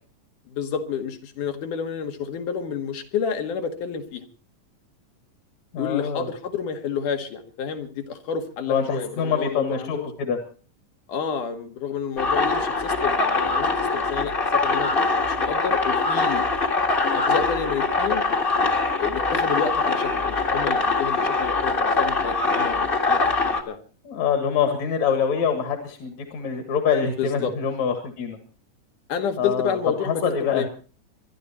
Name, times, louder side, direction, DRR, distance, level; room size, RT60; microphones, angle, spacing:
voice 1, 0.5-4.2 5.7-10.1 11.1-14.3 14.6-14.9 15.2-16.4 17.1-18.2 19.0-23.8 27.2-27.5 29.1-30.7, left 7 dB, 80° left, 6 dB, 3.2 m, -29 dB
voice 2, 5.7-6.3 8.7-10.4 24.0-28.4 29.4-30.6, left 6 dB, 60° left, 6 dB, 3.0 m, -25 dB
sound 1, 12.2-23.6, left 3 dB, 25° left, 1.2 m, -23 dB
25.0 x 11.0 x 4.3 m, 0.39 s
omnidirectional pair, 3.6 m